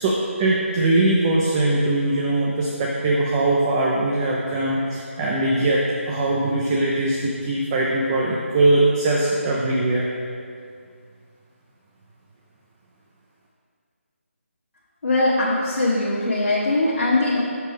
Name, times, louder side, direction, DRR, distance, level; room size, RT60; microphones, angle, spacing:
voice 1, 0.0-10.1, right 2 dB, 15° right, -3 dB, 0.4 m, -21 dB
voice 2, 15.0-17.4, left 2 dB, 70° left, -8 dB, 1.3 m, -21 dB
6.5 x 6.1 x 3.4 m, 2.3 s
figure-of-eight pair, 160°, 7 cm